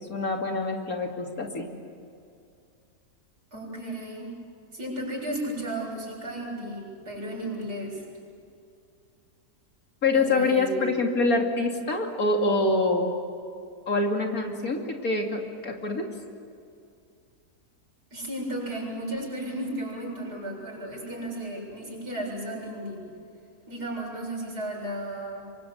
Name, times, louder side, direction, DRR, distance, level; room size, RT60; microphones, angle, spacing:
voice 1, 0.0-1.7 10.0-13.1 13.9-16.1, left 3 dB, 65° left, 2 dB, 3.1 m, -25 dB
voice 2, 3.5-4.4 4.7-8.0 10.1-11.0 18.1-23.1 23.7-25.4, right 1 dB, 90° right, -3 dB, 8.3 m, -34 dB
26.5 x 24.0 x 8.2 m, 2.4 s
omnidirectional pair, 1.7 m